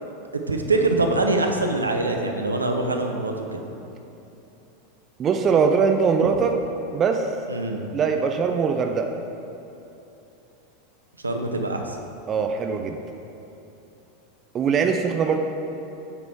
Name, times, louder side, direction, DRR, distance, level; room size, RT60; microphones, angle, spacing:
voice 1, 0.0-3.6 7.5-7.9 11.2-12.0, right 2 dB, 90° right, 4 dB, 0.6 m, -24 dB
voice 2, 5.2-6.5 6.9-7.3 7.9-9.1 12.3-13.0 14.5-15.4, right 6 dB, 35° right, 5 dB, 0.5 m, -21 dB
8.7 x 4.0 x 4.6 m, 2.9 s
figure-of-eight pair, 90°, 0 cm